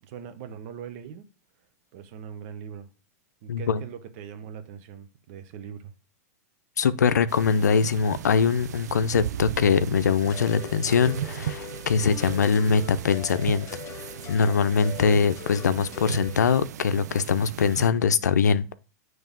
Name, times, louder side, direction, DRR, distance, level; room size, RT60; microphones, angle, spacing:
voice 1, 0.0-1.3 1.9-2.9 3.4-5.9, right 8 dB, 55° right, 1.0 m, -41 dB
voice 2, 3.5-3.8 6.8-13.7 14.3-18.6, left 6 dB, 90° left, 0.5 m, -22 dB
sound 1, 7.3-17.9, right 10 dB, 80° right, 0.4 m, -37 dB
sound 2, 10.2-16.4, left 10 dB, 35° left, 0.6 m, -41 dB
7.2 x 3.2 x 5.2 m
hypercardioid pair, 105°, 9 cm